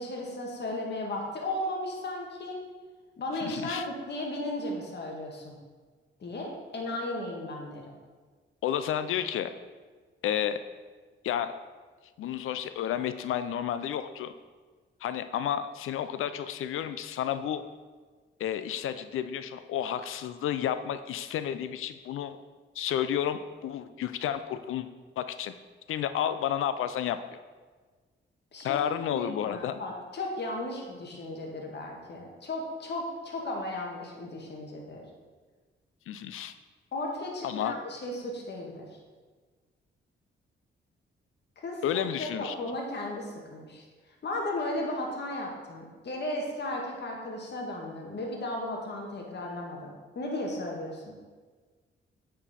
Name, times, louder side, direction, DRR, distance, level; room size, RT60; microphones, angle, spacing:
voice 1, 0.0-2.6 3.2-5.6 6.2-7.9 28.5-35.0 36.9-38.9 41.6-41.8 42.2-43.8 44.2-51.1, left 1 dB, 55° left, -1 dB, 1.6 m, -35 dB
voice 2, 3.4-3.8 8.6-9.5 10.2-10.6 11.2-11.5 12.2-14.3 15.0-17.6 18.4-22.4 22.7-24.9 25.2-25.5 25.9-27.4 28.6-29.7 36.1-36.5 37.4-37.8 41.8-42.5, left 10 dB, 85° left, 11 dB, 0.5 m, -31 dB
9.0 x 4.4 x 4.2 m, 1.4 s
cardioid pair, 85°, 21 cm